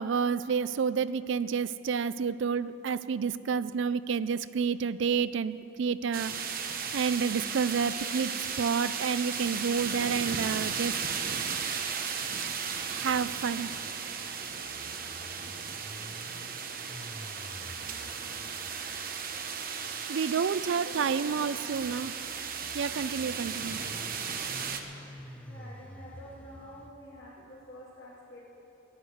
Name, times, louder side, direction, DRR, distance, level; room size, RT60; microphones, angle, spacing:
voice 1, 0.0-6.4 6.9-11.0 12.9-13.7 20.1-22.1 22.7-23.9, right 6 dB, 60° right, 16 dB, 0.4 m, -29 dB
sound 1, 6.1-24.8, right 6 dB, 45° right, 0.8 m, -35 dB
sound 2, 12.7-26.9, equal, 5° left, 0.7 m, -50 dB
voice 2, 17.6-18.5 18.8-19.3 20.6-22.0 25.5-28.4, left 1 dB, 60° left, -8 dB, 2.2 m, -49 dB
14.5 x 10.0 x 7.8 m, 2.9 s
head